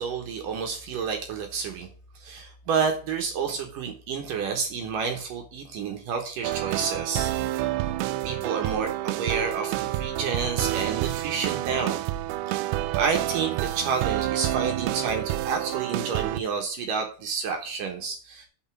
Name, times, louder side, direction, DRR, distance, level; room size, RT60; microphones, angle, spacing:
voice 1, 0.0-1.9 2.2-7.3 8.2-12.1 13.0-18.5, right 5 dB, 65° right, 3 dB, 2.5 m, -29 dB
sound 1, 6.4-16.4, right 14 dB, 90° right, 2.7 m, -28 dB
6.9 x 5.4 x 7.2 m, 0.42 s
omnidirectional pair, 4.6 m